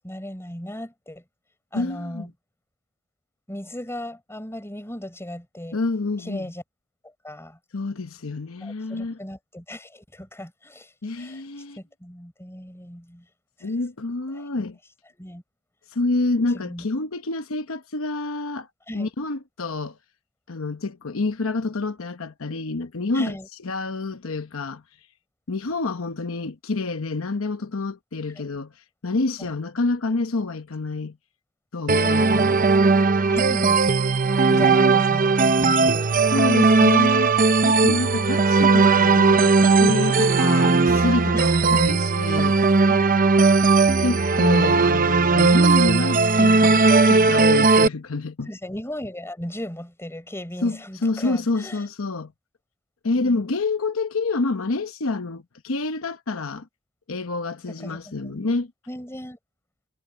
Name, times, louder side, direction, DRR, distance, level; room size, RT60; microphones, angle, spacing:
voice 1, 0.0-1.2 1.7-2.3 3.5-5.8 6.2-6.6 7.0-7.6 8.6-11.4 11.8-13.3 13.6-13.7 14.3-14.5 15.1-15.4 16.5-16.9 18.9-19.1 23.1-23.5 28.3-28.5 29.4-29.5 32.0-32.3 33.3-33.8 34.6-36.1 39.0-39.2 40.0-40.3 41.3-41.8 42.5-42.6 42.9-43.3 48.5-51.9 53.2-53.5 57.7-58.4 58.9-59.4, left 1 dB, 10° left, 5.6 m, -37 dB
voice 2, 1.7-2.2 5.7-6.4 7.7-9.2 11.0-11.8 13.6-14.8 15.9-18.7 18.9-20.0 20.5-23.3 23.6-24.8 25.5-28.7 29.0-31.2 31.7-32.7 34.5-34.8 36.3-37.4 37.6-42.6 44.0-48.5 50.6-52.3 53.0-56.7 57.1-58.7, left 3 dB, 80° left, 1.0 m, -28 dB
sound 1, 31.9-47.9, right 3 dB, 40° right, 0.8 m, -18 dB
head